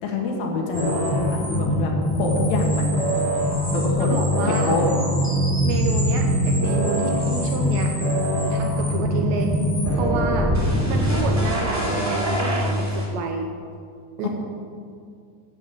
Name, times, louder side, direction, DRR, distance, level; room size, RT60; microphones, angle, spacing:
voice 1, 0.0-3.4 3.7-4.2 4.5-4.8 14.2-14.3, left 3 dB, 75° left, 0 dB, 4.1 m, -26 dB
sound 1, 0.7-13.1, equal, 5° right, 1.5 m, -23 dB
voice 2, 4.0-4.8 5.6-7.9 8.5-9.6 9.9-10.5 10.9-13.5 14.2-14.3, right 5 dB, 80° right, 3 dB, 2.7 m, -29 dB
10.5 x 8.7 x 7.6 m, 2.4 s
omnidirectional pair, 5.7 m